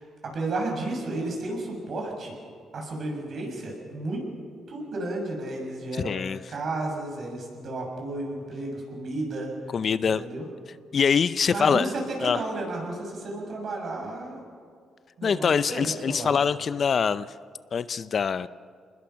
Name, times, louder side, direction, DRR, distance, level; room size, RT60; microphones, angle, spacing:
voice 1, 0.0-2.3 2.7-4.3 4.7-6.2 6.5-9.5 10.1-10.5 11.5-14.4 15.2-16.3, right 2 dB, 55° right, 0 dB, 6.9 m, -32 dB
voice 2, 6.0-6.4 9.7-10.2 10.9-11.9 12.2-12.4 15.2-17.3 17.7-18.5, left 6 dB, 50° left, 15 dB, 0.6 m, -24 dB
27.0 x 20.5 x 5.8 m, 2.1 s
cardioid pair, 90°, 0 cm